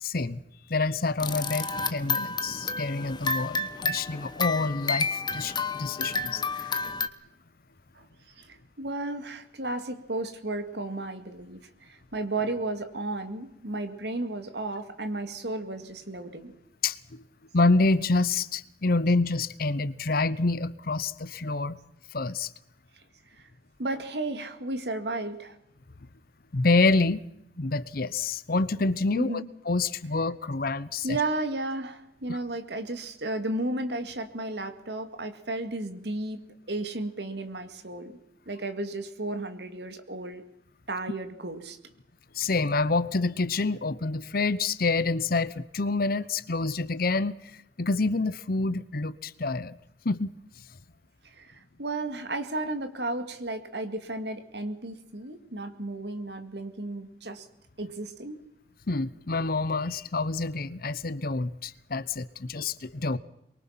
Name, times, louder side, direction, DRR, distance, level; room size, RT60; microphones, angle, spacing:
voice 1, 0.0-0.4 0.7-6.7 16.8-17.2 17.5-21.8 22.1-22.5 26.5-27.2 27.6-31.2 32.3-32.4 42.3-47.3 47.8-49.8 50.0-50.3 58.9-63.2, left 3 dB, 55° left, 0.9 m, -27 dB
sound 1, 1.2-7.1, left 4 dB, 25° left, 1.1 m, -30 dB
voice 2, 8.4-16.5 23.4-23.5 23.8-25.6 29.2-29.5 31.0-36.4 36.7-38.2 38.5-40.4 40.9-41.8 51.2-57.5 57.8-58.4, right 2 dB, 70° right, 2.3 m, -33 dB
23.5 x 23.5 x 5.9 m
head